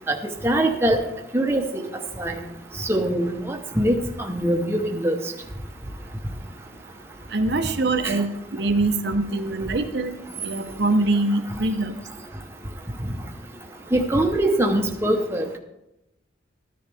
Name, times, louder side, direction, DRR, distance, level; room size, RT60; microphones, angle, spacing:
voice 1, 0.4-1.0 1.3-1.8 2.2-2.3 2.8-5.2 8.0-8.2 13.9-15.4, right 1 dB, 15° right, 2 dB, 0.9 m, -22 dB
voice 2, 7.3-10.1 10.4-11.9, right 2 dB, 60° right, 6 dB, 0.8 m, -23 dB
13.5 x 10.0 x 3.5 m, 0.89 s
head